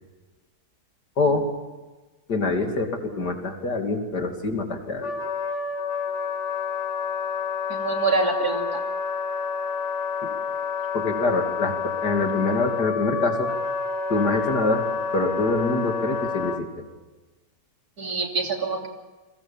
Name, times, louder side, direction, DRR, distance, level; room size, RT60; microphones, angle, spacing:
voice 1, 2.3-5.1 10.2-10.3 10.9-13.5 14.1-14.8 15.1-16.7, left 3 dB, 80° left, 4 dB, 3.4 m, -25 dB
Wind instrument woodwind instrument, 5.0-16.6, left 5 dB, 45° left, 1.9 m, -29 dB
voice 2, 7.7-8.8 18.0-18.9, right 4 dB, 70° right, 2 dB, 3.4 m, -25 dB
30.0 x 22.0 x 7.3 m, 1.2 s
omnidirectional pair, 1.7 m